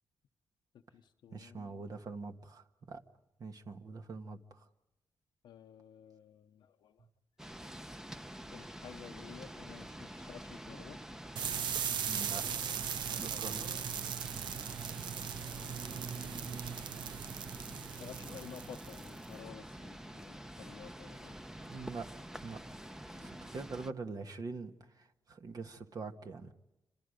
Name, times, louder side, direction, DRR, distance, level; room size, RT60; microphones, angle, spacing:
voice 1, 0.7-1.8 5.4-7.1 8.5-11.0 12.4-14.0 15.4-16.5 17.9-21.4 23.1-23.3, left 8 dB, 90° left, 0.9 m, -53 dB
voice 2, 1.3-3.0 3.4-4.7 7.0-7.1 12.0-12.5 12.9-13.7 15.7-16.8 21.6-22.1 22.4-22.6 23.2-26.5, right 4 dB, 55° right, 1.7 m, -44 dB
sound 1, 7.4-23.9, equal, 5° right, 0.8 m, -47 dB
sound 2, 11.4-19.3, right 8 dB, 85° right, 0.8 m, -39 dB
29.0 x 26.5 x 5.2 m
cardioid pair, 85°, 8 cm